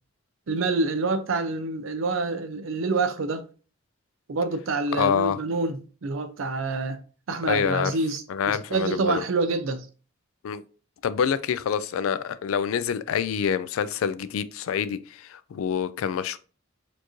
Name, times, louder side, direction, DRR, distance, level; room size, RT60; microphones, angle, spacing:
voice 1, 0.5-3.4 4.3-7.0 7.3-9.9, right 3 dB, 75° right, 0.5 m, -27 dB
voice 2, 5.0-5.4 7.5-7.9 8.3-9.2 10.4-10.6 11.0-16.4, left 7 dB, 80° left, 0.3 m, -26 dB
4.3 x 3.0 x 2.6 m
head